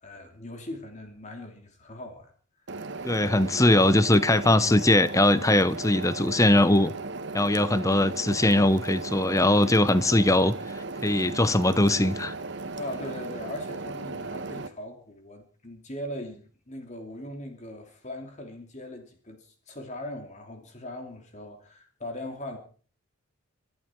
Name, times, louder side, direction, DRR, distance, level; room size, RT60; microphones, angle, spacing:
voice 1, 0.0-2.3 12.7-22.6, left 1 dB, 35° left, 2.8 m, -40 dB
sound 1, 2.7-14.7, right 3 dB, 55° right, 1.3 m, -36 dB
voice 2, 3.0-6.9 7.3-10.5 11.0-12.3, left 1 dB, 15° left, 0.8 m, -21 dB
25.5 x 11.5 x 4.5 m
head